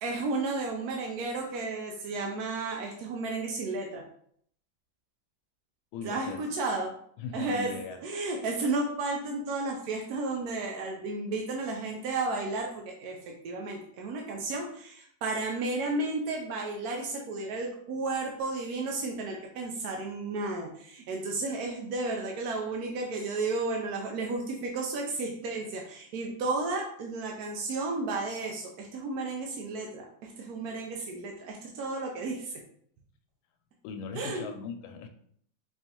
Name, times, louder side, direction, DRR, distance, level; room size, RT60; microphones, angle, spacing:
voice 1, 0.0-4.0 6.0-6.9 7.3-7.7 8.0-13.2 13.4-32.6 34.1-34.5, right 3 dB, 70° right, 1 dB, 0.9 m, -33 dB
voice 2, 5.9-6.4 7.2-8.0 33.8-35.1, left 5 dB, 90° left, 6 dB, 1.4 m, -39 dB
4.4 x 3.2 x 2.9 m, 0.64 s
omnidirectional pair, 2.1 m